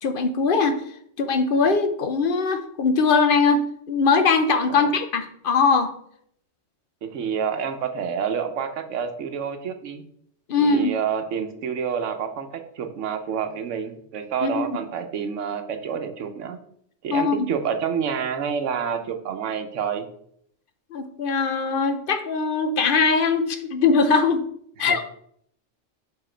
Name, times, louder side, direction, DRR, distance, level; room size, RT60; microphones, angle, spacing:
voice 1, 0.0-0.8 1.2-5.9 10.5-10.9 14.4-14.6 17.1-17.5 20.9-24.4 24.8-25.0, left 4 dB, 55° left, 8 dB, 0.7 m, -21 dB
voice 2, 7.0-10.0 10.6-16.6 17.0-20.1 24.8-25.1, right 7 dB, 85° right, 7 dB, 1.1 m, -28 dB
5.7 x 4.9 x 4.4 m, 0.68 s
omnidirectional pair, 1.3 m